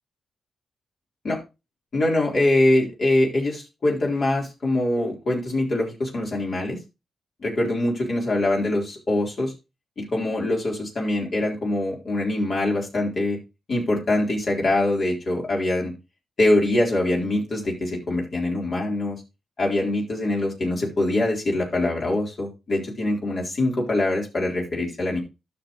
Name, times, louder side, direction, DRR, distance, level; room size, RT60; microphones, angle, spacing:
voice 1, 1.9-6.8 7.4-9.5 10.0-13.4 13.7-15.9 16.4-19.2 19.6-25.2, left 1 dB, 60° left, -2 dB, 3.9 m, -23 dB
12.0 x 6.1 x 3.1 m, 0.26 s
supercardioid pair, 50°, 0 cm